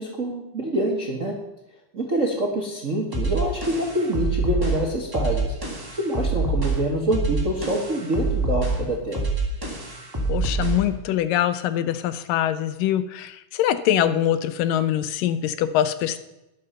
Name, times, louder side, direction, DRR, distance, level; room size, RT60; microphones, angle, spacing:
voice 1, 0.0-1.4 1.9-5.5 5.9-9.3, right 1 dB, 45° right, 0 dB, 1.0 m, -26 dB
sound 1, 3.1-10.9, right 3 dB, 10° right, 1.9 m, -26 dB
voice 2, 10.3-16.2, left 11 dB, 85° left, 12 dB, 2.4 m, -23 dB
12.5 x 11.0 x 5.6 m, 0.92 s
omnidirectional pair, 3.8 m